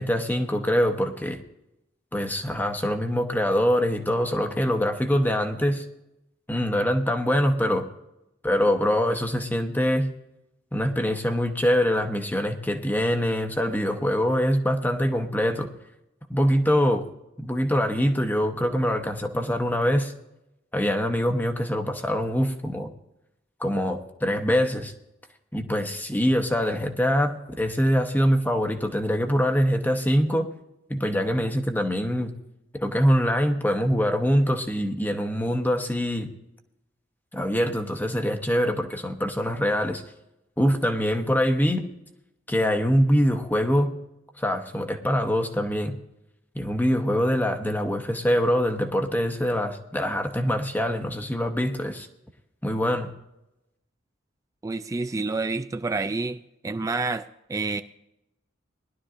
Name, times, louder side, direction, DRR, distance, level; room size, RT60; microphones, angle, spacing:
voice 1, 0.0-1.4 2.1-5.8 6.5-7.8 8.4-10.1 10.7-15.7 16.3-17.0 17.4-20.1 20.7-22.9 23.6-24.9 25.5-30.5 30.9-32.3 32.7-36.3 37.3-40.0 40.6-41.8 42.5-44.0 44.4-46.0 46.5-52.1 52.6-53.1, equal, 10° left, 5 dB, 1.0 m, -24 dB
voice 2, 54.6-57.8, right 3 dB, 15° right, 10 dB, 0.3 m, -29 dB
20.5 x 11.5 x 2.5 m, 0.88 s
head